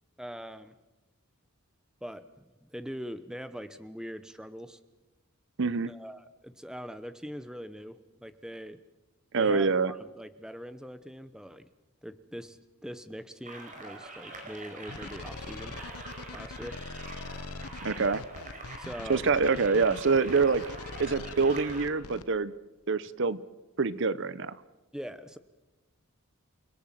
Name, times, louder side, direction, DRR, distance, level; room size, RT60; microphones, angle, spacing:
voice 1, 0.2-0.7 2.0-4.8 5.9-8.8 9.4-11.7 12.0-15.8 16.3-16.8 18.7-19.2 24.9-25.4, equal, 5° right, 11 dB, 1.0 m, -42 dB
voice 2, 5.6-5.9 9.3-9.9 17.8-18.2 19.1-20.6 21.0-22.5 22.9-23.4 23.8-24.6, right 4 dB, 55° right, 17 dB, 0.8 m, -25 dB
sound 1, 13.4-21.8, right 2 dB, 35° right, 5.1 m, -45 dB
sound 2, 14.9-22.2, left 3 dB, 85° left, 1.1 m, -42 dB
29.0 x 18.5 x 7.5 m, 1.1 s
head